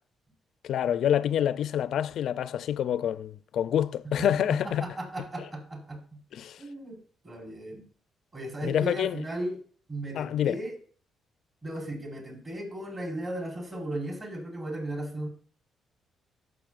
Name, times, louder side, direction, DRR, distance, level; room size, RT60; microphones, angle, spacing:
voice 1, 0.6-4.9 5.4-5.5 6.3-6.6 8.6-9.2 10.2-10.6, left 10 dB, 70° left, 0.4 m, -27 dB
voice 2, 4.2-6.0 6.6-7.0 7.2-7.9 8.3-9.6 9.9-10.7 11.6-15.3, right 1 dB, 35° right, 4.4 m, -36 dB
15.0 x 6.3 x 2.4 m
cardioid pair, 90°, 0 cm